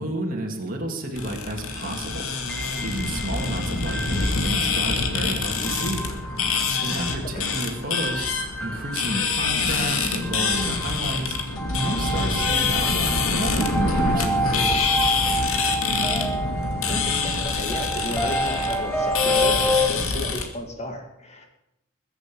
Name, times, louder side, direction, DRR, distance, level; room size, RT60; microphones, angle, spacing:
voice 1, 0.0-2.3 2.8-6.0 6.8-8.3 8.6-11.4 11.7-14.7, right 1 dB, 40° right, 0 dB, 2.4 m, -31 dB
sound 1, 1.1-20.4, left 4 dB, 75° left, 2.3 m, -26 dB
sound 2, 2.5-19.9, equal, 5° left, 1.3 m, -30 dB
voice 2, 16.9-21.5, left 1 dB, 30° left, 4 dB, 2.3 m, -34 dB
21.5 x 8.2 x 7.1 m, 0.83 s
head